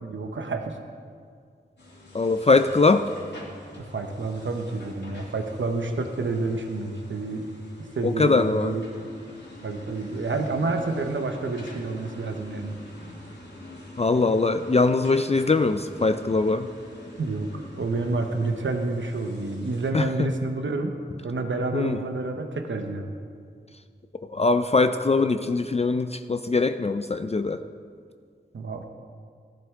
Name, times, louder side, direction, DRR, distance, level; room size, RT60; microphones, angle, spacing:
voice 1, 0.0-0.8 3.8-7.5 8.0-9.1 9.6-12.9 17.2-21.0 21.2-23.1 28.5-28.9, right 3 dB, 85° right, 5 dB, 1.0 m, -29 dB
sound 1, 1.8-19.9, left 1 dB, 65° left, 2.6 m, -45 dB
voice 2, 2.1-3.1 8.0-8.7 14.0-16.7 19.9-20.3 21.7-22.0 24.3-27.6, left 3 dB, 35° left, 8 dB, 0.4 m, -22 dB
15.0 x 12.0 x 3.7 m, 2.1 s
wide cardioid pair, 75°, 19 cm